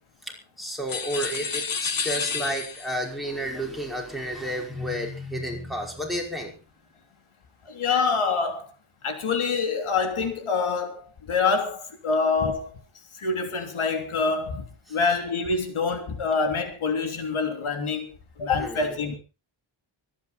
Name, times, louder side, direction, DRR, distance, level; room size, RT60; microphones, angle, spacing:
voice 1, 0.3-6.5 18.6-18.9, equal, ahead, 5.1 m, -31 dB
sound 1, 0.9-3.0, left 5 dB, 45° left, 1.5 m, -30 dB
voice 2, 7.6-8.7 9.0-12.7 13.2-19.2, left 4 dB, 90° left, 3.3 m, -26 dB
24.5 x 10.0 x 4.2 m
wide cardioid pair, 165°, 48 cm